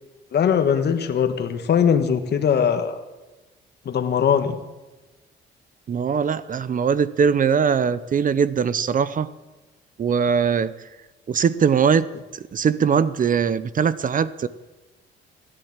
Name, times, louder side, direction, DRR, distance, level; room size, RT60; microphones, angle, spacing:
voice 1, 0.3-3.0 3.8-4.6, left 7 dB, 55° left, 7 dB, 1.4 m, -20 dB
voice 2, 5.9-9.3 10.0-10.7 11.3-12.1 12.5-14.5, right 6 dB, 45° right, 17 dB, 0.7 m, -21 dB
16.5 x 10.0 x 7.4 m, 1.1 s
cardioid pair, 90°, 20 cm